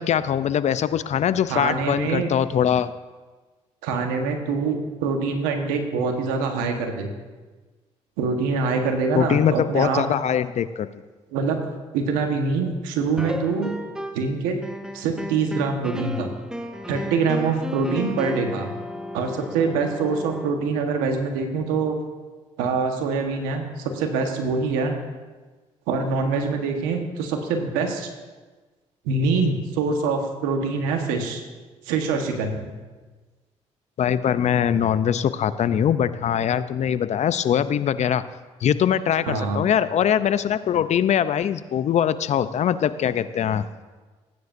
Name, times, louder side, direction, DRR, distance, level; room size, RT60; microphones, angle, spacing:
voice 1, 0.0-2.9 9.1-10.9 34.0-38.2 38.6-43.7, left 9 dB, 55° left, 14 dB, 0.6 m, -22 dB
voice 2, 1.5-2.3 3.8-7.1 8.2-10.0 11.3-11.6 11.9-13.7 14.1-14.6 14.9-16.3 16.9-18.7 19.1-22.0 22.6-25.0 25.9-28.1 29.0-31.4 31.8-32.6 39.2-39.6, right 4 dB, 90° right, 4 dB, 1.4 m, -24 dB
sound 1, 13.2-14.3 14.6-20.5, equal, 5° right, 0.8 m, -34 dB
17.5 x 9.4 x 2.6 m, 1.3 s
supercardioid pair, 60°, 14 cm